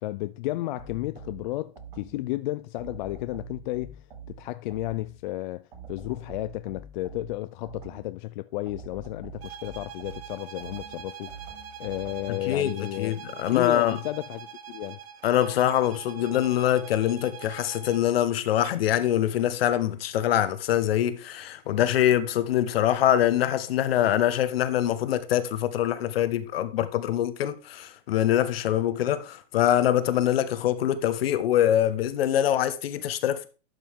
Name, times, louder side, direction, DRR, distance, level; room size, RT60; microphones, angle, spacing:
voice 1, 0.0-4.0 4.3-11.4 11.8-13.2 13.5-15.0, left 17 dB, 50° left, 0.4 m, -33 dB
sound 1, 0.8-2.3 2.8-5.2 5.7-8.2 8.7-12.4, right 4 dB, 50° right, 5.1 m, -45 dB
sound 2, 9.4-18.1, right 8 dB, 80° right, 1.1 m, -44 dB
voice 2, 12.3-14.0 15.2-33.5, left 11 dB, 75° left, 1.1 m, -24 dB
11.5 x 5.3 x 3.6 m
supercardioid pair, 145°, 30 cm